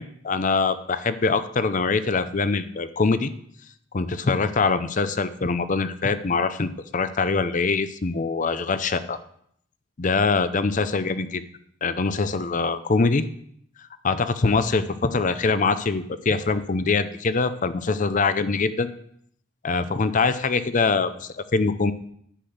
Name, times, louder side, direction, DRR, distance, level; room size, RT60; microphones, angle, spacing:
voice 1, 0.0-3.3 3.9-9.2 10.0-11.4 11.8-13.2 14.0-18.9 19.6-21.9, left 4 dB, 45° left, 13 dB, 0.6 m, -23 dB
10.0 x 6.0 x 7.9 m, 0.66 s
head